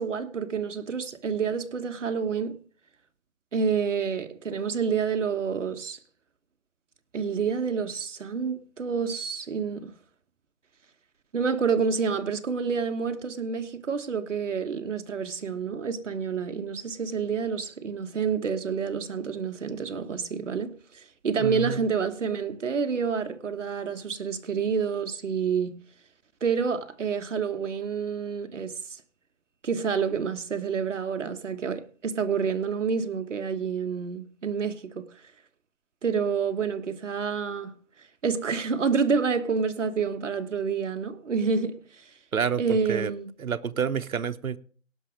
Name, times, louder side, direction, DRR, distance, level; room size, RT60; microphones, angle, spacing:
voice 1, 0.0-2.6 3.5-6.0 7.1-9.9 11.3-25.8 26.4-28.7 29.6-35.1 36.0-37.7 38.2-41.8 42.6-43.3, right 6 dB, 60° right, 1.3 m, -28 dB
voice 2, 21.4-21.8 42.3-43.1 43.4-44.6, right 7 dB, 85° right, 1.0 m, -28 dB
18.0 x 6.1 x 5.1 m
hypercardioid pair, 165°, 41 cm